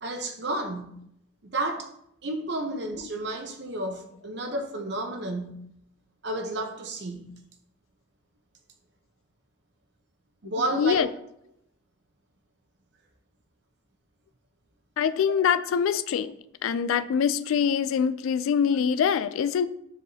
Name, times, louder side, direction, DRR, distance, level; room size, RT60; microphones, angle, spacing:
voice 1, 0.0-1.0 1.4-1.9 2.2-5.6 6.2-7.3 10.4-11.1, right 2 dB, 55° right, 0.8 m, -31 dB
voice 2, 10.7-11.1 15.0-16.3 16.6-19.7, left 7 dB, 80° left, 0.3 m, -24 dB
7.1 x 4.7 x 2.8 m
head